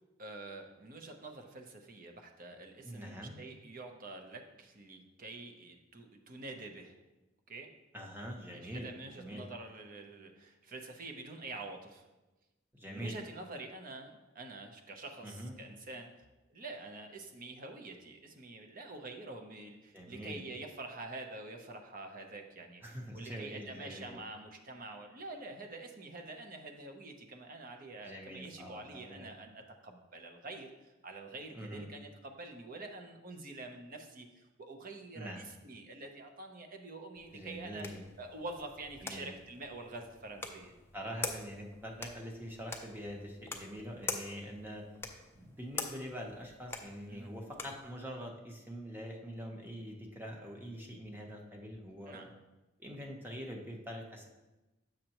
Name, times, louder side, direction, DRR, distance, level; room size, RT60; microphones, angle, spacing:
voice 1, 0.2-7.0 7.5-7.7 8.5-12.1 12.9-16.1 16.5-22.8 23.1-37.9 38.2-40.7 47.1-47.3 52.1-52.3, right 2 dB, 50° right, 4 dB, 0.8 m, -47 dB
voice 2, 2.8-3.4 7.9-8.9 9.1-9.4 12.7-13.2 15.2-15.5 19.9-20.4 22.8-24.2 28.0-29.3 31.5-31.9 35.1-35.5 37.3-38.1 39.0-39.3 40.9-44.9 45.3-52.3 52.8-54.3, equal, 10° right, 0 dB, 0.9 m, -44 dB
sound 1, 37.2-47.9, left 3 dB, 15° left, 0.5 m, -45 dB
7.4 x 6.4 x 3.0 m, 1.1 s
head